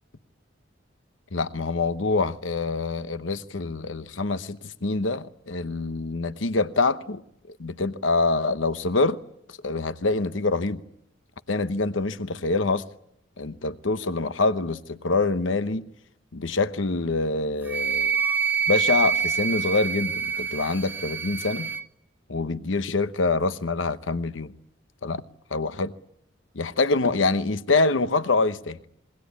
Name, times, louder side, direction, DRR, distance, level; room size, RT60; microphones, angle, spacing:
voice 1, 1.3-7.2 7.5-9.2 9.6-10.8 11.5-12.8 13.4-15.8 16.3-18.2 18.7-21.7 22.3-24.5 25.0-25.2 25.5-25.9 26.5-28.8, left 3 dB, 80° left, 0.9 m, -25 dB
Wind instrument woodwind instrument, 17.7-21.8, right 6 dB, 10° right, 1.1 m, -26 dB
27.0 x 22.0 x 8.4 m
head